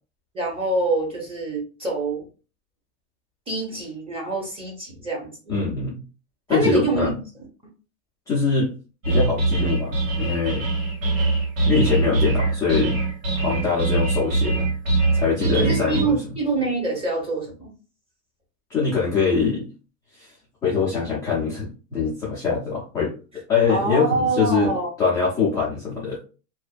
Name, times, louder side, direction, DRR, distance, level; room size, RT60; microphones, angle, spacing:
voice 1, 0.3-2.2 3.5-5.5 6.5-7.5 15.5-17.7 23.7-24.9, right 3 dB, 15° right, -2 dB, 0.8 m, -25 dB
voice 2, 5.5-6.0 6.5-7.1 8.3-8.7 9.1-10.7 11.7-13.0 13.4-14.7 15.1-16.2 18.7-19.7 20.2-20.3 20.6-23.1 23.5-24.7 25.0-26.2, left 5 dB, 10° left, -8 dB, 0.3 m, -23 dB
sound 1, 9.0-16.0, right 3 dB, 90° right, 1.4 m, -22 dB
2.5 x 2.1 x 2.3 m, 0.35 s
supercardioid pair, 135°, 39 cm